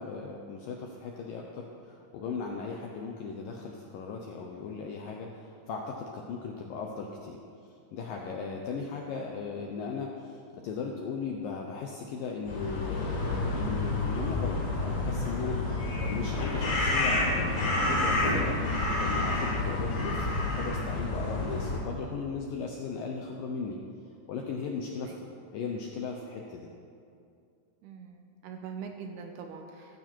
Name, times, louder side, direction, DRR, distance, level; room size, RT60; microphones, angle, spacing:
voice 1, 0.0-7.4 7.9-15.6 16.0-23.8 24.3-26.7, left 5 dB, 75° left, 0 dB, 2.1 m, -37 dB
sound 1, 12.4-21.8, left 2 dB, 50° left, 4.4 m, -29 dB
sound 2, 13.4-18.3, left 1 dB, 35° left, 2.8 m, -38 dB
voice 2, 27.8-30.0, right 6 dB, 75° right, 4 dB, 2.6 m, -43 dB
15.5 x 15.0 x 4.5 m, 2.4 s
omnidirectional pair, 5.2 m